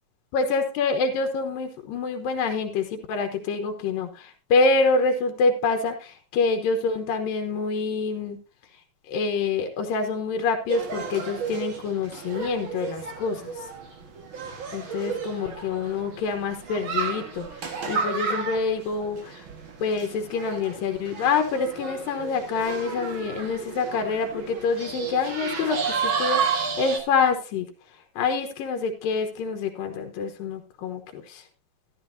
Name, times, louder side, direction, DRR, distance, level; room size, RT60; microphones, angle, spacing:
voice 1, 0.3-8.4 9.1-13.5 14.7-19.4 19.8-27.7 28.2-31.4, left 4 dB, 85° left, 6 dB, 2.8 m, -26 dB
sound 1, 10.7-27.0, right 5 dB, 45° right, 1.9 m, -32 dB
13.5 x 12.0 x 2.7 m, 0.32 s
omnidirectional pair, 3.9 m